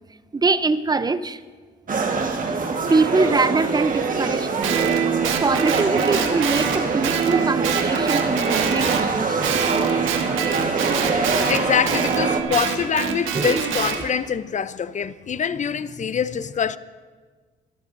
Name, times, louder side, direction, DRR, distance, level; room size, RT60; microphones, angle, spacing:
voice 1, 0.3-1.4 2.9-4.8 5.2-9.4 10.7-10.9 13.3-13.6, right 3 dB, 20° right, 0.5 m, -23 dB
sound 1, 1.9-12.4, right 4 dB, 45° right, 1.5 m, -24 dB
Guitar, 4.6-9.1 9.4-14.0, right 7 dB, 85° right, 1.5 m, -25 dB
voice 2, 11.5-16.8, left 7 dB, 40° left, 0.6 m, -24 dB
23.5 x 13.5 x 2.6 m
cardioid pair, 90°, 20 cm